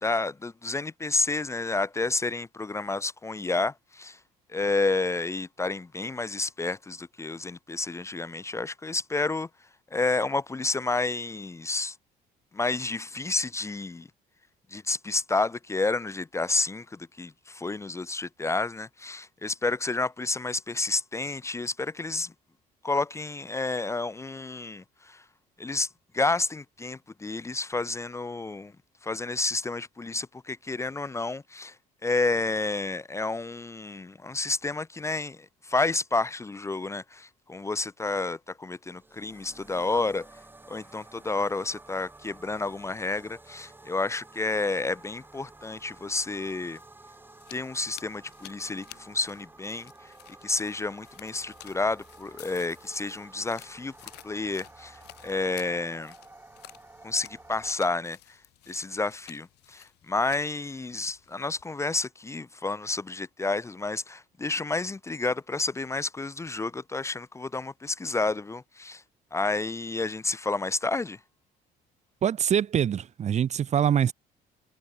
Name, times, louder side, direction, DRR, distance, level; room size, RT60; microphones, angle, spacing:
voice 1, 0.0-4.2 4.5-9.5 9.9-12.0 12.5-14.1 14.7-22.3 22.8-25.2 25.6-28.7 29.0-31.8 32.0-40.3 40.7-46.8 47.5-50.1 50.4-56.1 57.0-58.4 58.7-69.0 69.3-71.2, left 3 dB, 15° left, 0.7 m, -30 dB
sound 1, 38.8-57.7, right 2 dB, 10° right, 1.6 m, -51 dB
sound 2, 46.5-61.6, left 17 dB, 80° left, 6.5 m, -53 dB
voice 2, 72.2-74.1, right 9 dB, 40° right, 0.9 m, -24 dB
cardioid pair, 110°, 17 cm